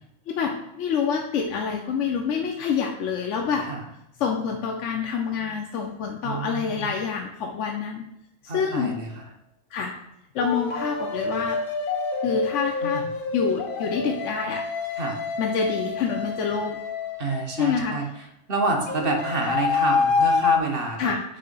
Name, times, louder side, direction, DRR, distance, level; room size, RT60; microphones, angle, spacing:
voice 1, 0.3-3.7 4.2-8.0 8.4-9.0 9.7-9.9 10.3-11.6 12.2-13.0 13.3-14.6 15.4-16.8 17.6-18.0 21.0-21.2, left 6 dB, 80° left, 2 dB, 1.0 m, -27 dB
voice 2, 6.2-6.9 8.5-9.2 12.8-13.0 15.0-15.2 17.2-18.0 18.5-21.1, right 3 dB, 50° right, 2 dB, 1.2 m, -28 dB
sound 1, 8.8-9.0 10.4-17.8 18.9-20.6, left 5 dB, 50° left, 0.8 m, -27 dB
7.4 x 2.8 x 5.2 m, 0.82 s
omnidirectional pair, 1.2 m